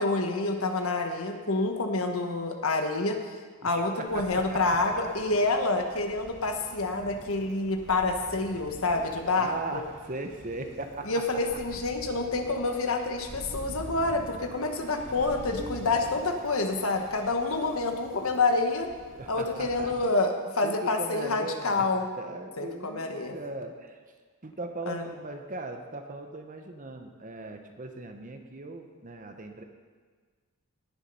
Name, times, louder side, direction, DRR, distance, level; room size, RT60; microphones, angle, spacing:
voice 1, 0.0-3.2 3.6-9.8 11.1-18.9 19.3-22.0 22.6-23.3 24.9-25.0, left 3 dB, 65° left, 4 dB, 1.3 m, -28 dB
voice 2, 3.6-4.8 9.4-11.1 14.9-15.1 15.6-15.8 19.1-19.9 20.6-21.9 22.2-24.0 24.4-29.6, right 2 dB, 35° right, 5 dB, 1.0 m, -38 dB
sound 1, 4.1-20.0, right 1 dB, 60° right, 1.9 m, -46 dB
18.5 x 7.4 x 5.4 m, 1.5 s
head